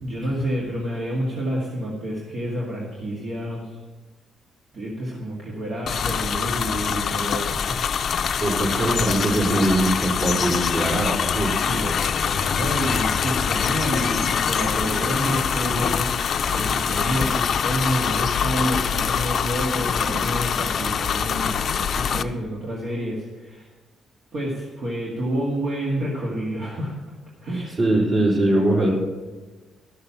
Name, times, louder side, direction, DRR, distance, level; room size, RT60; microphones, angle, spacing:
voice 1, 0.0-3.7 4.7-7.8 11.6-23.7 24.3-26.9 27.4-27.8, equal, 60° right, -4 dB, 2.1 m, -29 dB
sound 1, 5.9-22.2, left 7 dB, 55° left, 0.5 m, -24 dB
voice 2, 8.4-11.5 27.8-28.9, right 1 dB, 45° right, -3 dB, 4.0 m, -21 dB
sound 2, 14.6-22.2, right 1 dB, 25° right, 2.6 m, -41 dB
13.0 x 6.7 x 5.8 m, 1.3 s
cardioid pair, 90°, 0 cm